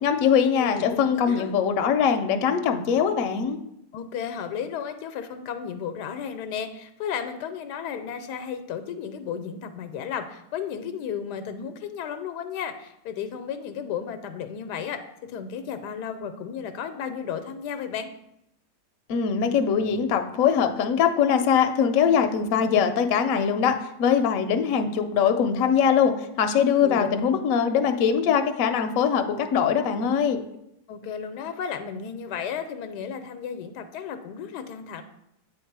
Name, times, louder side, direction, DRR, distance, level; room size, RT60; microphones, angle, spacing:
voice 1, 0.0-3.6 19.1-30.4, left 7 dB, 65° left, 7 dB, 0.9 m, -22 dB
voice 2, 0.6-1.5 3.9-18.1 26.8-27.1 30.9-35.0, left 7 dB, 80° left, 9 dB, 1.2 m, -34 dB
8.4 x 3.6 x 4.6 m, 0.81 s
omnidirectional pair, 1.8 m